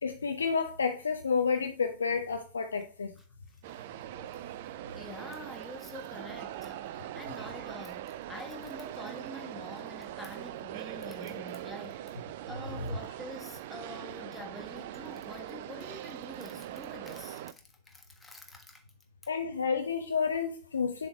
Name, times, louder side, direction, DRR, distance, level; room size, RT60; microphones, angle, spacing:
voice 1, 0.0-3.1 19.3-21.1, left 5 dB, 75° left, 0.5 m, -30 dB
sound 1, 3.6-17.5, right 13 dB, 50° right, 0.3 m, -42 dB
voice 2, 4.9-12.2 12.5-18.8, left 1 dB, 10° left, 1.4 m, -46 dB
7.0 x 3.5 x 4.5 m
figure-of-eight pair, 90°, 0 cm